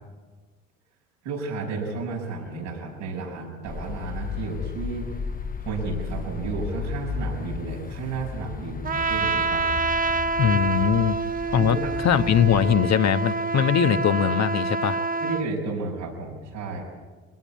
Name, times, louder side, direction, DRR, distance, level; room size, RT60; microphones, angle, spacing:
voice 1, 1.2-5.2 5.6-9.7 11.6-11.9 15.2-16.8, right 3 dB, 85° right, -1 dB, 6.6 m, -32 dB
sound 1, 3.6-12.8, left 5 dB, 25° left, 0.9 m, -34 dB
Trumpet, 8.8-15.5, right 3 dB, 25° right, 0.8 m, -27 dB
voice 2, 10.4-11.2 11.5-11.8 12.0-15.0, left 8 dB, 50° left, 9 dB, 1.3 m, -21 dB
23.0 x 18.0 x 8.5 m, 1.4 s
hypercardioid pair, 60°, 35 cm